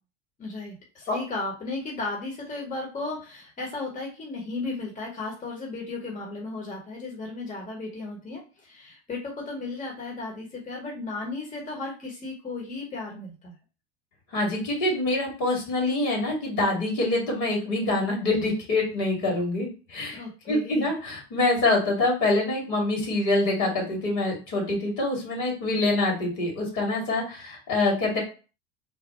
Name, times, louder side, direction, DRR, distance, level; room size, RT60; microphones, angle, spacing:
voice 1, 0.4-13.5 20.1-20.9, left 3 dB, 25° left, -1 dB, 1.2 m, -35 dB
voice 2, 14.3-20.2 20.5-28.2, left 2 dB, 65° left, 0 dB, 2.1 m, -25 dB
3.3 x 2.1 x 4.3 m, 0.34 s
hypercardioid pair, 85°, 32 cm